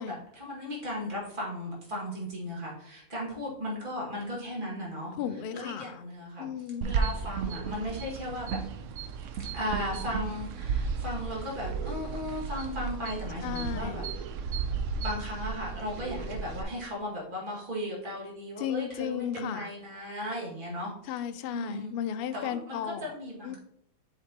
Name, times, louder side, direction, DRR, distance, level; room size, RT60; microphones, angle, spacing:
voice 1, 0.0-5.1 5.5-8.6 9.5-14.0 14.4-14.6 14.9-21.2 21.5-21.9 22.3-23.6, left 1 dB, 35° right, -5 dB, 2.2 m, -36 dB
voice 2, 5.2-6.0 6.4-6.9 13.4-14.0 18.6-19.7 21.1-23.1 23.4-23.6, left 9 dB, 75° left, 10 dB, 0.5 m, -34 dB
sound 1, 6.8-16.6, right 5 dB, 70° right, 0.8 m, -34 dB
7.6 x 5.0 x 2.9 m, 0.73 s
omnidirectional pair, 1.5 m